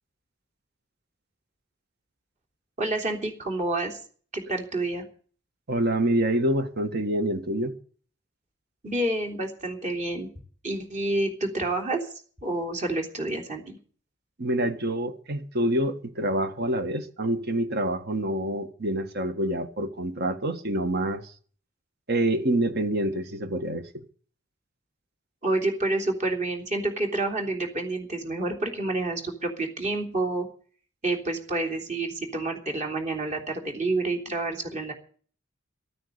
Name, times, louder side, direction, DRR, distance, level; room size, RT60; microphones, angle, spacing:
voice 1, 2.8-4.0 4.3-5.0 8.8-10.3 10.6-12.1 12.4-13.8 25.4-30.5 31.0-34.9, right 2 dB, 35° right, 3.4 m, -28 dB
voice 2, 5.7-7.7 14.4-21.3 22.1-23.8, right 1 dB, 55° right, 1.6 m, -26 dB
13.5 x 9.4 x 8.1 m
head